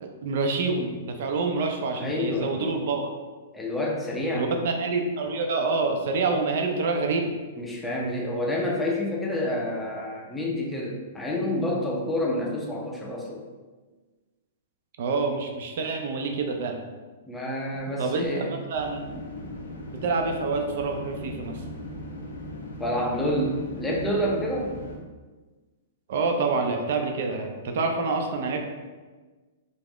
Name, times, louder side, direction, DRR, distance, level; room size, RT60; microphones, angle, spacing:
voice 1, 0.0-3.1 4.3-7.3 15.0-16.8 18.0-19.2 20.0-21.6 26.1-28.6, right 3 dB, 65° right, 4 dB, 0.4 m, -27 dB
voice 2, 2.0-2.7 3.5-4.5 7.6-13.4 17.3-18.6 22.8-24.7, left 1 dB, 10° left, -3 dB, 0.4 m, -28 dB
sound 1, 18.7-25.0, left 1 dB, 90° left, 0.5 m, -38 dB
2.4 x 2.0 x 3.5 m, 1.3 s
hypercardioid pair, 130°, 0 cm